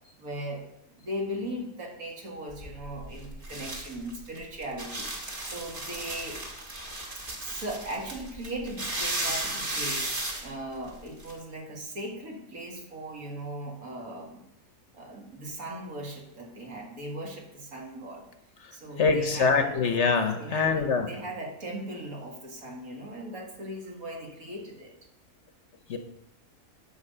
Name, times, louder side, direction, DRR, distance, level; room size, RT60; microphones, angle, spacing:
voice 1, 0.2-0.7 0.9-6.4 7.4-10.1 10.4-14.5 14.9-18.3 18.7-19.8 20.4-24.9, right 1 dB, 70° right, 0 dB, 2.3 m, -38 dB
sound 1, 2.5-11.3, right 1 dB, 35° right, 1.7 m, -35 dB
voice 2, 19.0-21.1 25.9-26.0, left 5 dB, 55° left, 7 dB, 1.0 m, -24 dB
11.0 x 4.8 x 6.6 m, 0.84 s
omnidirectional pair, 1.5 m